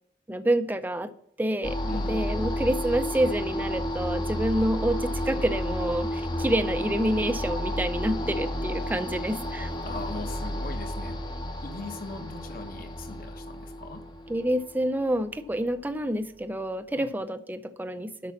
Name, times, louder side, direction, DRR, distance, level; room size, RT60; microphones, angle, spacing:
voice 1, 0.3-1.1 1.4-1.8 2.1-9.7 14.3-18.3, right 1 dB, 10° right, 9 dB, 0.5 m, -28 dB
sound 1, 1.6-15.8, left 1 dB, 25° left, 0.8 m, -32 dB
voice 2, 1.8-2.5 9.8-11.2 11.6-14.0 16.9-17.1, left 3 dB, 50° left, 5 dB, 1.3 m, -40 dB
8.3 x 6.0 x 7.3 m, 0.67 s
head